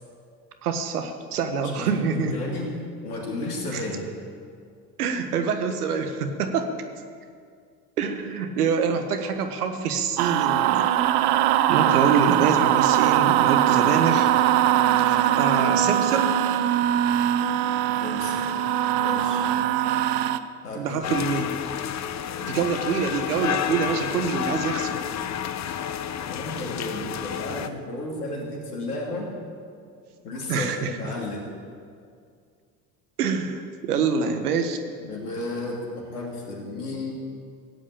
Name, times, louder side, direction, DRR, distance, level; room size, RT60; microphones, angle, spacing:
voice 1, 0.6-2.4 3.7-3.8 5.0-6.7 8.0-10.9 11.7-14.3 15.0-16.4 20.7-21.5 22.4-25.0 30.5-31.0 33.2-34.8, right 6 dB, 85° right, 7 dB, 1.5 m, -25 dB
voice 2, 1.6-4.1 18.0-18.5 19.0-19.5 20.6-21.0 26.3-29.3 30.2-31.5 35.0-37.1, left 2 dB, 85° left, -1 dB, 3.1 m, -33 dB
sound 1, 10.2-20.4, right 12 dB, 60° right, 0.9 m, -21 dB
sound 2, 21.0-27.7, left 9 dB, 40° left, 0.9 m, -30 dB
16.0 x 8.6 x 8.7 m, 2.2 s
hypercardioid pair, 65°, 44 cm